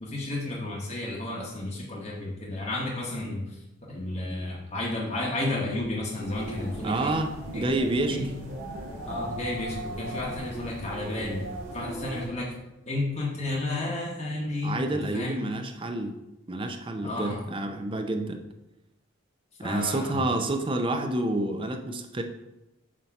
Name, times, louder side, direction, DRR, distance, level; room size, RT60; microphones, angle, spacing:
voice 1, 0.0-3.6 3.9-7.1 7.5-7.7 8.1-8.3 9.1-11.4 11.7-12.5 12.8-15.4 17.0-17.4 19.6-20.3, left 2 dB, 30° left, -4 dB, 0.9 m, -32 dB
sound 1, 6.2-12.3, right 1 dB, 80° right, 1.9 m, -38 dB
voice 2, 6.8-8.2 14.6-16.2 16.5-18.4 19.6-22.2, right 2 dB, 25° right, 5 dB, 0.5 m, -29 dB
7.3 x 2.8 x 5.8 m, 0.94 s
head